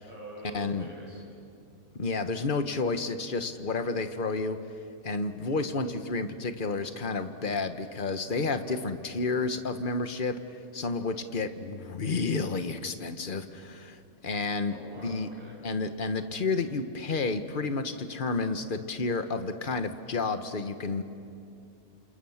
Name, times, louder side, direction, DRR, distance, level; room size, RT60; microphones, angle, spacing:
voice 1, 0.0-1.4 14.7-15.6, right 2 dB, 25° right, -4 dB, 8.0 m, -45 dB
voice 2, 0.5-0.9 2.0-4.6 5.0-10.4 10.7-14.7 15.0-15.3 15.6-21.0, left 3 dB, 40° left, 9 dB, 1.4 m, -31 dB
28.5 x 28.0 x 7.3 m, 2.5 s
omnidirectional pair, 1.4 m